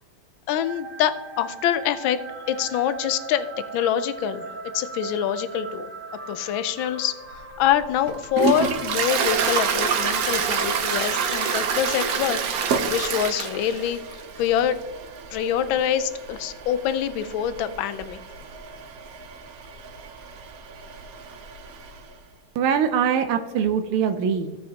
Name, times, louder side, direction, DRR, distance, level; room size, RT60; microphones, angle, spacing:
voice 1, 0.5-2.2 2.5-3.5 3.7-4.4 4.7-5.9 6.3-12.4 12.9-14.0 14.4-14.8 15.3-18.2, left 10 dB, 75° left, 13 dB, 1.3 m, -25 dB
sound 1, 0.6-12.8, right 3 dB, 30° right, 1.2 m, -39 dB
Toilet flush, 7.3-22.1, right 6 dB, 65° right, 0.9 m, -28 dB
voice 2, 22.5-24.6, right 7 dB, 85° right, 7 dB, 1.5 m, -23 dB
16.5 x 5.6 x 2.8 m, 1.3 s
omnidirectional pair, 2.3 m